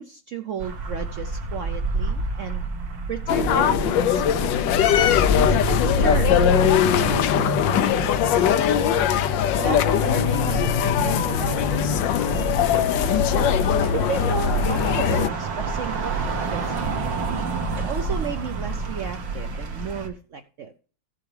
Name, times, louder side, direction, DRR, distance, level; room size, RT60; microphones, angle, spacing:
voice 1, 0.0-2.6 3.1-4.7 5.4-8.6 9.6-13.1 13.8-16.9 17.7-20.7, right 7 dB, 65° right, 7 dB, 0.8 m, -34 dB
sound 1, 0.6-20.1, right 3 dB, 80° right, 2.1 m, -30 dB
sound 2, 3.3-15.3, left 8 dB, 90° left, 1.4 m, -21 dB
15.0 x 6.9 x 3.3 m, 0.41 s
omnidirectional pair, 1.9 m